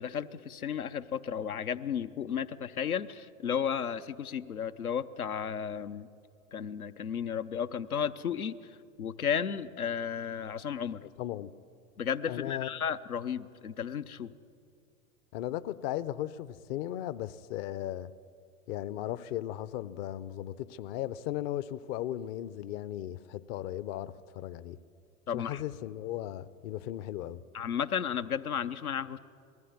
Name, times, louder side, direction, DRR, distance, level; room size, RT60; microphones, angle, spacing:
voice 1, 0.0-6.1 6.5-11.0 12.0-14.3 25.3-25.6 27.5-29.2, left 8 dB, 85° left, 9 dB, 0.8 m, -33 dB
voice 2, 11.0-11.5 12.3-12.7 15.3-18.1 18.7-24.8 25.3-27.4, left 13 dB, 45° left, 16 dB, 0.7 m, -36 dB
19.5 x 14.0 x 9.5 m, 2.3 s
figure-of-eight pair, 90°, 42 cm